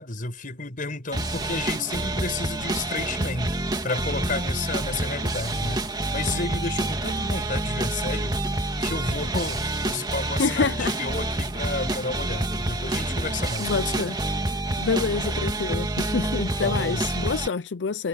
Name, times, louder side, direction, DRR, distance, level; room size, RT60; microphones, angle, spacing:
voice 1, 0.0-3.6 3.8-8.4 8.8-14.1 16.6-17.1, left 3 dB, 50° left, 5.9 m, -31 dB
sound 1, 1.1-17.5, right 2 dB, 25° right, 2.2 m, -28 dB
voice 2, 10.4-10.9 13.6-14.2 14.5-18.1, left 5 dB, 90° left, 0.5 m, -27 dB
head